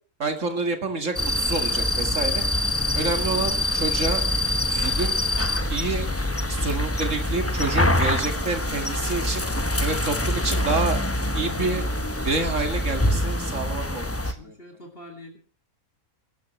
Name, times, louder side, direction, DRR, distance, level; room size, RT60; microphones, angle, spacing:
voice 1, 0.2-2.4 2.9-4.2 4.7-5.2 5.7-6.1 6.5-9.5 9.8-11.0 11.3-11.8 12.3-14.5, right 3 dB, 60° right, 6 dB, 2.3 m, -28 dB
sound 1, 1.2-14.3, left 1 dB, 10° left, 0.9 m, -25 dB
voice 2, 14.1-15.4, left 1 dB, 40° left, 3 dB, 2.8 m, -45 dB
21.0 x 13.0 x 3.2 m, 0.42 s
omnidirectional pair, 1.5 m